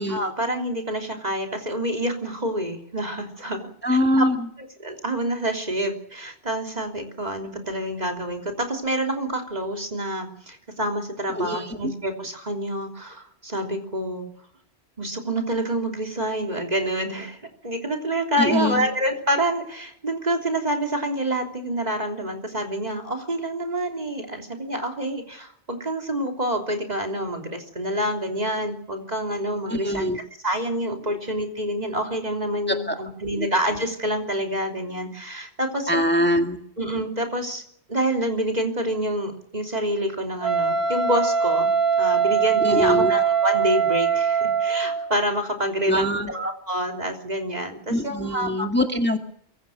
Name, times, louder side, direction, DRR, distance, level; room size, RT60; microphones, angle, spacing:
voice 1, 0.1-4.2 4.6-14.3 15.0-36.0 36.8-37.6 37.9-41.7 42.0-48.7, right 1 dB, 40° right, 2 dB, 3.4 m, -27 dB
voice 2, 3.8-4.4 11.3-11.7 18.4-18.9 29.7-30.2 32.9-33.0 33.4-33.5 35.9-36.6 42.6-43.1 45.9-46.3 47.9-49.2, left 1 dB, 10° left, 4 dB, 1.9 m, -23 dB
Wind instrument woodwind instrument, 40.4-45.1, right 7 dB, 65° right, 2.0 m, -22 dB
24.5 x 23.0 x 6.5 m, 0.67 s
omnidirectional pair, 1.1 m